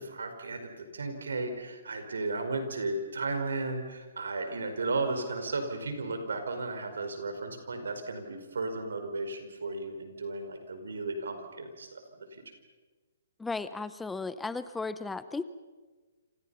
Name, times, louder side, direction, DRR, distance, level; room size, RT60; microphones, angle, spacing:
voice 1, 0.0-12.4, right 3 dB, 85° right, 7 dB, 5.0 m, -35 dB
voice 2, 13.4-15.4, left 3 dB, 5° left, 14 dB, 0.7 m, -35 dB
28.0 x 28.0 x 5.7 m, 1.3 s
hypercardioid pair, 145°, 0 cm